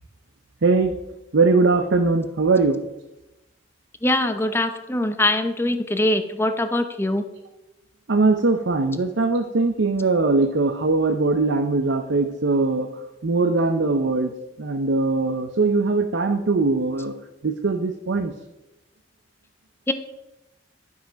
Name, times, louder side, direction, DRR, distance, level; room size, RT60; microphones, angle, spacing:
voice 1, 0.6-0.9 1.3-2.8 8.1-12.9 13.2-14.3 14.6-17.1 17.4-18.3, right 3 dB, 70° right, 6 dB, 0.6 m, -21 dB
voice 2, 4.0-7.2 19.9-20.0, left 1 dB, 10° left, 8 dB, 0.6 m, -22 dB
11.5 x 5.7 x 5.1 m, 0.96 s
head